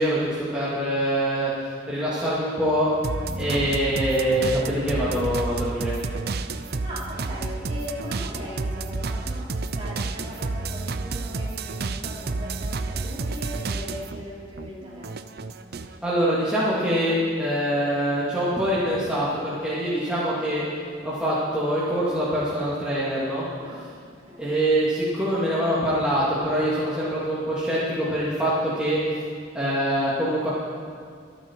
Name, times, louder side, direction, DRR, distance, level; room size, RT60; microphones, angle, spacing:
voice 1, 0.0-2.9 3.4-5.9 16.0-20.6 21.0-23.5 24.4-29.0 29.5-30.5, equal, 5° right, -10 dB, 2.3 m, -24 dB
sound 1, 3.0-14.2 14.6-16.0, right 3 dB, 55° right, 0.6 m, -30 dB
voice 2, 3.2-3.6 6.7-15.1 23.6-24.6, equal, 30° right, -7 dB, 4.1 m, -39 dB
24.0 x 9.3 x 4.6 m, 2.3 s
head